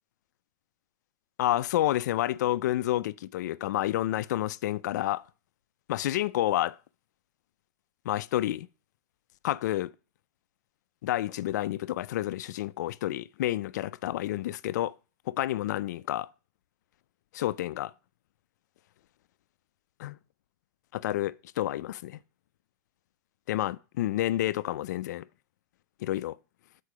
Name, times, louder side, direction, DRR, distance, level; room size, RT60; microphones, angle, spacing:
voice 1, 1.4-5.2 5.9-6.8 8.0-8.7 9.4-9.9 11.0-14.9 15.3-16.3 17.3-17.9 20.0-20.2 20.9-22.2 23.5-25.2 26.0-26.4, left 14 dB, 70° left, 0.4 m, -29 dB
6.6 x 4.6 x 5.9 m
supercardioid pair, 155°, 10 cm